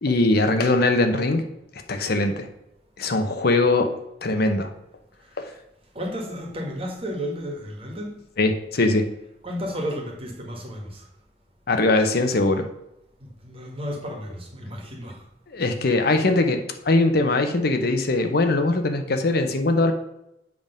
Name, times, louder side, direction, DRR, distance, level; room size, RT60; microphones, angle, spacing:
voice 1, 0.0-1.4 1.9-2.5 3.0-3.9 4.2-4.7 5.4-5.5 8.4-9.1 11.7-12.7 15.5-19.9, left 2 dB, 60° left, 0.8 m, -21 dB
voice 2, 5.2-5.6 5.9-8.2 9.4-11.1 13.2-15.2, equal, 35° right, 1.7 m, -33 dB
7.8 x 3.6 x 5.2 m
head